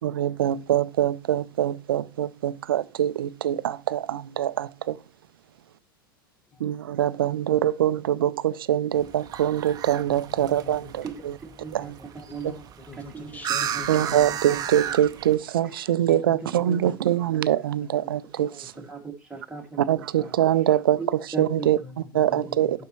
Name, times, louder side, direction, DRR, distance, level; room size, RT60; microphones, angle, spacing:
voice 1, 0.0-5.0 6.6-11.0 11.7-12.0 13.9-18.7 19.9-21.0 21.4-21.8 22.1-22.9, right 11 dB, 75° right, 0.5 m, -24 dB
voice 2, 7.3-7.6 10.1-11.1 11.8-14.8 16.0-17.2 18.6-18.9 21.8-22.9, left 4 dB, 15° left, 1.5 m, -46 dB
sound 1, 8.9-15.4, right 9 dB, 35° right, 0.8 m, -34 dB
voice 3, 11.0-12.6 13.1-13.3 13.7-14.2 14.5-14.6 14.8-15.0 15.6-16.3 16.7-16.8 17.3-20.3 21.0-21.1 21.3-21.8 22.3-22.6, right 4 dB, 10° right, 2.3 m, -39 dB
11.5 x 4.3 x 3.1 m
hypercardioid pair, 90°, 12 cm